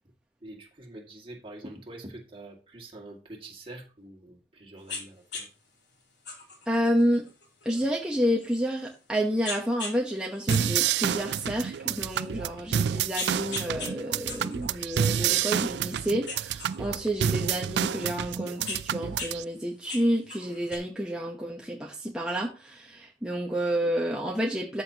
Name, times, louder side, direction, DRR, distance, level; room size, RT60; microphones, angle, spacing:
voice 1, 0.4-5.5, right 1 dB, 30° right, -1 dB, 2.2 m, -45 dB
sound 1, 4.9-5.0 5.3-5.5 6.2-8.9 9.4-10.0 10.3-11.7 12.2-12.3 12.9-13.9 14.3-15.9 16.2-17.6 18.3-19.3 19.6-20.8, left 4 dB, 85° left, 3.1 m, -39 dB
voice 2, 6.7-7.2 7.6-24.8, equal, 5° right, -2 dB, 1.0 m, -29 dB
sound 2, 10.5-19.4, right 9 dB, 75° right, 0.3 m, -29 dB
13.5 x 6.3 x 2.9 m, 0.35 s
head